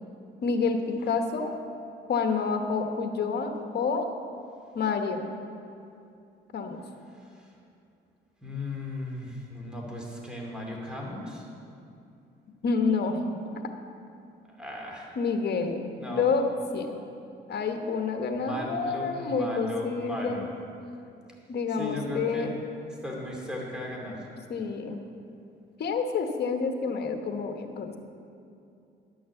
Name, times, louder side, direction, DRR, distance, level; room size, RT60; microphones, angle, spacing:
voice 1, 0.4-1.5 2.1-4.1 4.7-5.3 6.5-6.8 12.6-13.2 15.2-16.5 16.7-17.0 17.5-20.5 21.5-22.5 24.5-25.0 25.8-27.9, left 5 dB, 55° left, 5 dB, 1.2 m, -28 dB
voice 2, 7.2-7.5 8.4-11.5 14.5-15.1 16.0-16.3 18.3-20.5 21.8-22.5 23.0-24.2, left 1 dB, 5° right, -2 dB, 2.5 m, -36 dB
11.5 x 6.3 x 7.1 m, 2.6 s
cardioid pair, 90°, 20 cm